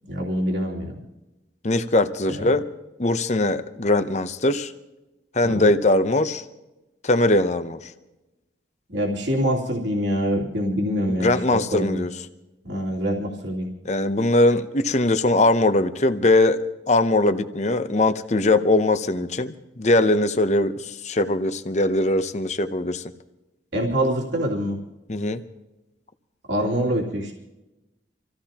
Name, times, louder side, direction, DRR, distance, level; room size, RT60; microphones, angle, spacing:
voice 1, 0.1-1.0 2.3-2.5 5.4-5.7 8.9-12.0 12.6-13.7 23.7-24.8 26.5-27.3, equal, 75° right, -2 dB, 2.9 m, -25 dB
voice 2, 1.6-2.6 3.0-4.7 5.3-6.4 7.0-7.8 11.2-12.1 13.8-16.6 16.9-23.0 25.1-25.4, left 2 dB, 40° left, 10 dB, 0.8 m, -21 dB
26.5 x 15.5 x 2.9 m, 1.0 s
head